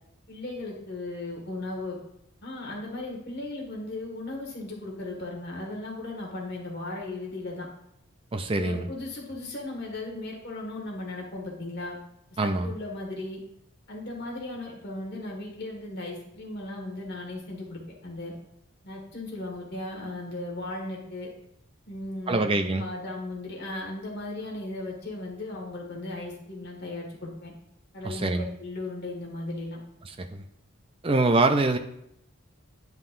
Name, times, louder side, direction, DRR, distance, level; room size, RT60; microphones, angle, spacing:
voice 1, 0.3-2.0 2.4-7.7 8.6-12.0 12.4-13.4 13.9-18.3 18.8-21.3 21.9-27.5 27.9-29.8, left 2 dB, 50° left, -1 dB, 1.8 m, -36 dB
voice 2, 8.3-8.9 12.4-12.7 22.3-22.9 28.0-28.5 30.2-30.4 31.0-31.8, right 2 dB, 25° right, 7 dB, 0.5 m, -24 dB
10.5 x 5.5 x 2.6 m, 0.77 s
head